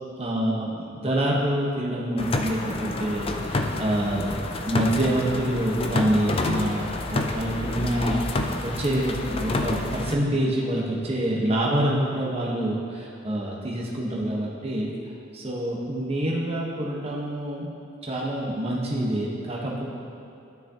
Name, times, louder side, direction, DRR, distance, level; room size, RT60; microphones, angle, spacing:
voice 1, 0.2-14.9 15.3-17.7 18.0-19.8, right 1 dB, 30° right, -3 dB, 1.2 m, -26 dB
sound 1, 2.2-10.1, left 2 dB, 25° left, 0.4 m, -28 dB
13.0 x 6.0 x 2.9 m, 2.8 s
head